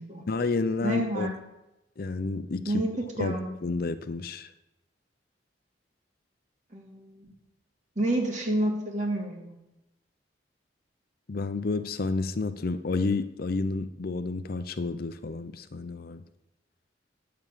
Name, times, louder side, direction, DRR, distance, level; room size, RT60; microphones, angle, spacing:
voice 1, 0.3-1.3 2.0-2.8 3.2-3.4 3.6-4.5 11.3-16.2, left 3 dB, 55° left, 11 dB, 0.6 m, -30 dB
voice 2, 0.8-1.4 2.6-3.5 6.7-7.2 8.0-9.6, right 1 dB, 40° right, 0 dB, 2.4 m, -29 dB
9.3 x 6.7 x 7.5 m, 0.92 s
head